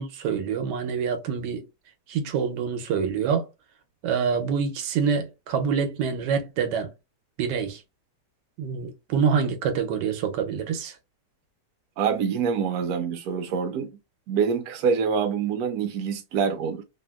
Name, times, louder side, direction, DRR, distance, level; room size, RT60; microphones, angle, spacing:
voice 1, 0.0-1.6 2.1-3.5 4.0-6.9 7.4-7.8 8.6-11.0, right 6 dB, 90° right, 1.3 m, -26 dB
voice 2, 12.0-13.9 14.3-16.8, right 6 dB, 75° right, 1.0 m, -25 dB
2.9 x 2.7 x 2.2 m
omnidirectional pair, 1.8 m